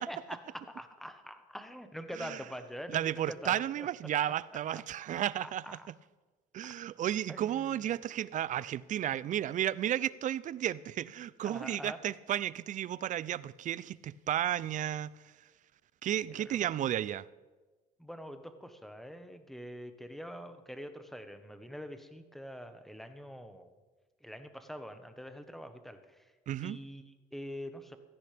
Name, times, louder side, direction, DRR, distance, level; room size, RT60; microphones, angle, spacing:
voice 1, 0.0-3.9 5.4-5.9 7.3-7.8 11.4-12.0 16.3-16.6 18.0-23.7 24.2-26.3 26.6-28.0, equal, ahead, 1.2 m, -45 dB
voice 2, 2.9-5.6 6.5-15.1 16.0-17.2 26.5-26.8, right 11 dB, 50° right, 0.4 m, -33 dB
16.0 x 13.5 x 3.5 m
cardioid pair, 110°, 17 cm